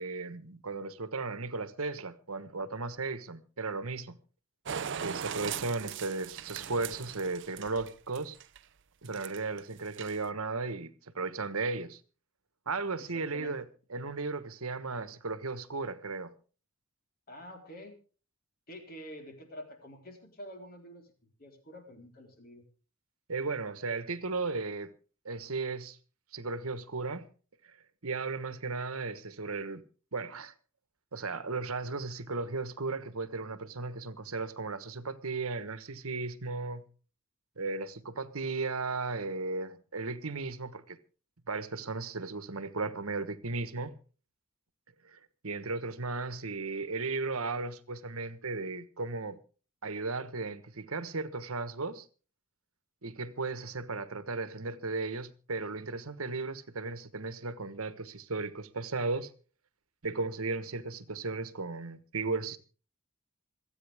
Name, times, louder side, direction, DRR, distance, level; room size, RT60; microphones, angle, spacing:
voice 1, 0.0-4.2 5.0-8.4 9.0-12.0 12.7-16.3 23.3-24.9 25.2-26.0 26.3-27.3 27.6-27.8 28.0-29.8 30.1-30.5 31.1-36.8 37.6-41.0 41.5-44.0 45.0-49.4 49.8-52.1 53.0-59.3 60.0-62.6, right 3 dB, 85° right, 1.3 m, -35 dB
sound 1, 4.7-8.6 9.0-9.6 9.9-10.3, right 7 dB, 55° right, 0.6 m, -39 dB
voice 2, 13.0-13.6 17.3-18.0 18.7-21.1 21.4-22.6, equal, 45° left, 4.0 m, -47 dB
27.0 x 9.2 x 3.5 m
head